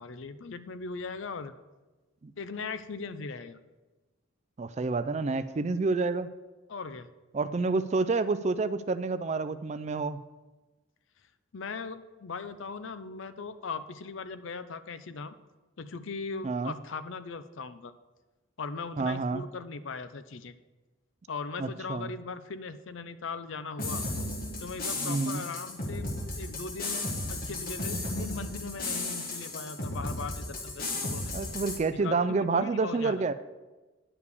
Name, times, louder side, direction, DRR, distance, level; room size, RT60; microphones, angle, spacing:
voice 1, 0.0-1.5 2.4-3.6 6.7-7.1 11.5-15.3 15.8-17.9 18.6-20.5 21.3-24.0 24.6-31.3 31.9-33.2, left 4 dB, 70° left, 12 dB, 0.5 m, -39 dB
voice 2, 4.6-6.3 7.3-10.2 16.4-16.8 19.0-19.4 21.6-22.1 25.0-25.5 31.3-33.3, right 3 dB, 35° right, 13 dB, 0.3 m, -29 dB
sound 1, 23.8-31.8, left 2 dB, 45° left, 1.4 m, -34 dB
9.9 x 4.8 x 6.9 m, 1.2 s
head